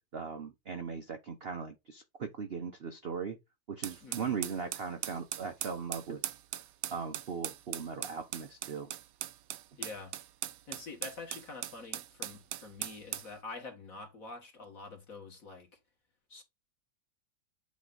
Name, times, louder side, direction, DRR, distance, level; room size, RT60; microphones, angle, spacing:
voice 1, 0.1-3.4 3.7-6.2 6.9-8.9, right 6 dB, 50° right, 0.7 m, -38 dB
sound 1, 3.8-13.3, right 12 dB, 80° right, 1.2 m, -40 dB
voice 2, 4.0-4.4 9.8-10.1 10.7-15.7 16.3-16.4, left 3 dB, 50° left, 2.1 m, -46 dB
8.3 x 3.1 x 3.9 m
omnidirectional pair, 2.0 m